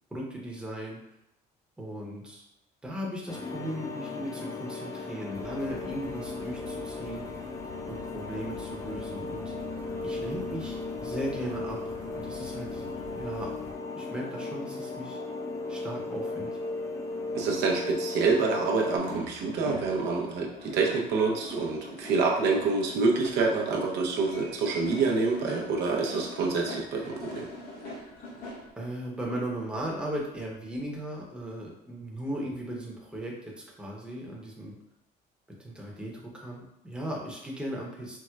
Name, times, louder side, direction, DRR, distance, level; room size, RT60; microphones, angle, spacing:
voice 1, 0.1-1.0 1.8-2.4 2.8-7.4 7.9-9.5 10.0-13.5 14.0-15.2 15.7-16.5 28.8-33.5 33.8-34.8 35.6-38.2, right 1 dB, 5° right, -3 dB, 0.8 m, -37 dB
sound 1, 3.3-19.0, left 3 dB, 20° left, 0.4 m, -36 dB
sound 2, 5.3-13.7, left 4 dB, 45° left, 1.2 m, -44 dB
voice 2, 17.3-27.5, right 4 dB, 80° right, 0 dB, 0.6 m, -27 dB
sound 3, 18.8-28.7, left 1 dB, 90° left, 1.1 m, -43 dB
4.4 x 2.0 x 2.3 m, 0.84 s
cardioid pair, 110°, 17 cm